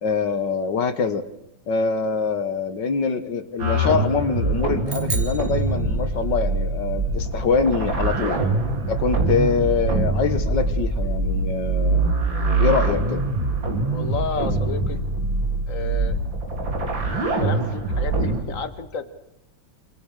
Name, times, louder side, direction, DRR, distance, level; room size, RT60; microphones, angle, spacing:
voice 1, 0.0-1.2 1.7-8.4 8.9-12.0 12.6-13.2, left 5 dB, 70° left, 11 dB, 2.1 m, -24 dB
sound 1, 3.6-14.7, left 2 dB, 15° left, 3.2 m, -35 dB
sound 2, 3.6-18.4, right 3 dB, 90° right, 4.5 m, -24 dB
sound 3, 4.9-6.5, right 3 dB, 35° right, 2.8 m, -35 dB
voice 2, 13.9-15.0 15.7-16.2 17.4-19.0, left 5 dB, 45° left, 11 dB, 1.9 m, -31 dB
27.5 x 26.5 x 6.6 m, 0.89 s
omnidirectional pair, 2.0 m